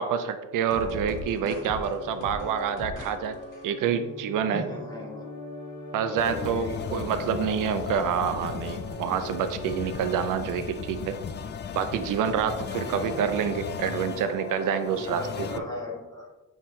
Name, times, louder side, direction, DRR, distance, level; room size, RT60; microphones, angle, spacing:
voice 1, 0.0-3.4 3.6-4.6 5.9-11.2 11.7-15.6, right 7 dB, 80° right, 10 dB, 0.5 m, -27 dB
sound 1, 0.7-10.1, left 1 dB, 70° left, 1.5 m, -40 dB
voice 2, 4.5-5.2 6.0-7.0 12.7-13.1 15.0-16.3, left 2 dB, 10° left, -4 dB, 1.6 m, -37 dB
sound 2, 6.2-15.6, left 7 dB, 35° left, 0.4 m, -36 dB
7.3 x 4.7 x 2.7 m, 1.1 s
cardioid pair, 115°, 31 cm